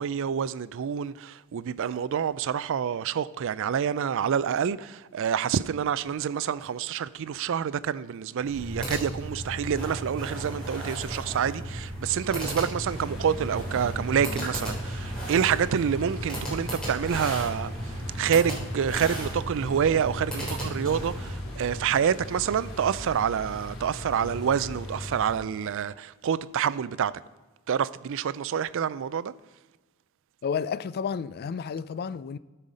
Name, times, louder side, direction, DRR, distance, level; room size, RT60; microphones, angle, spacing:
voice 1, 0.0-27.1 27.7-29.3, right 8 dB, 60° right, 0.4 m, -27 dB
sound 1, 8.4-21.4, right 1 dB, 5° left, 3.7 m, -35 dB
sound 2, 12.8-25.4, left 1 dB, 75° left, 2.5 m, -39 dB
voice 2, 30.4-32.4, left 6 dB, 45° left, 0.3 m, -31 dB
13.0 x 5.6 x 5.0 m
head